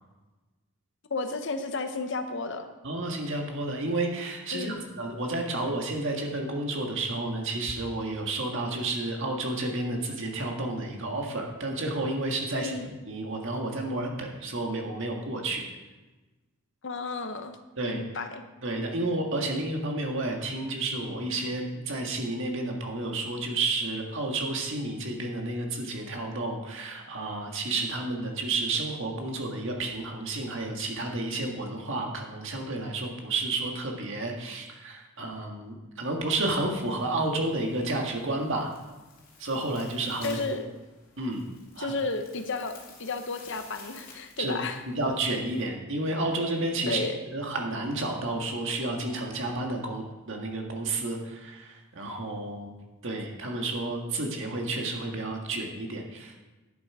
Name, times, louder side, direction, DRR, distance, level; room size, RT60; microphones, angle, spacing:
voice 1, 1.1-2.7 4.5-4.8 12.5-12.9 16.8-17.6 17.8-18.4 40.2-40.7 41.8-44.8 46.9-47.2, left 3 dB, 60° left, 8 dB, 0.9 m, -32 dB
voice 2, 2.8-12.7 13.1-15.6 17.8-18.0 18.6-38.7 39.4-40.4 41.2-41.5 41.8-41.9 44.4-44.6 45.0-47.0 47.3-52.7 53.0-56.4, right 2 dB, 60° right, 1 dB, 1.8 m, -31 dB
sound 1, 36.4-45.6, left 4 dB, 40° left, 2.6 m, -53 dB
10.5 x 8.0 x 4.9 m, 1.2 s
head